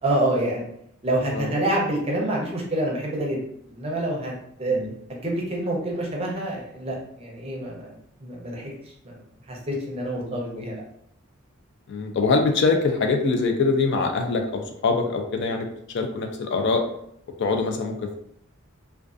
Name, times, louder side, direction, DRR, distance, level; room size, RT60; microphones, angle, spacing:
voice 1, 0.0-0.7 1.0-3.4 3.7-4.3 4.6-4.8 5.1-7.9 8.2-8.7 9.0-9.2 9.5-10.8, right 1 dB, 30° right, -2 dB, 0.5 m, -27 dB
voice 2, 10.2-10.6 11.9-16.8 17.4-18.2, left 4 dB, 55° left, 4 dB, 0.3 m, -24 dB
2.4 x 2.3 x 2.4 m, 0.70 s
head